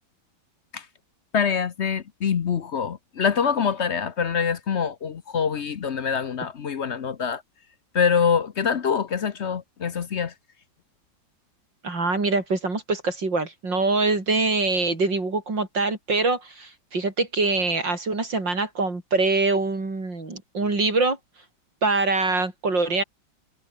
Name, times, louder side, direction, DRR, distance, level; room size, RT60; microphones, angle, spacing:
voice 1, 1.3-7.4 7.9-10.3, left 6 dB, 50° left, 0.8 m, -25 dB
voice 2, 11.8-21.2 21.8-23.0, right 3 dB, 65° right, 5.8 m, -24 dB
omnidirectional pair, 2.1 m